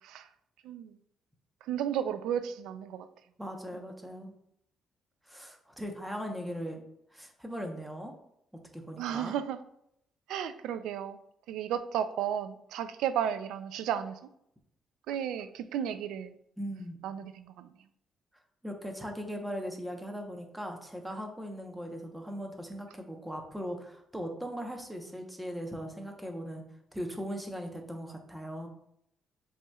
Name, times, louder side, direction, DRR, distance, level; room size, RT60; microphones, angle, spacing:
voice 1, 0.6-1.0 1.6-3.1 3.7-3.8 9.0-9.6 10.3-11.2 11.5-14.2 15.1-16.4 17.0-17.7, right 9 dB, 90° right, 11 dB, 0.3 m, -33 dB
voice 2, 3.4-4.3 5.2-6.8 7.1-8.1 8.7-9.4 16.6-17.0 18.6-26.6 26.9-28.7, equal, 5° right, 2 dB, 0.9 m, -39 dB
7.1 x 3.0 x 2.3 m, 0.75 s
cardioid pair, 90°, 0 cm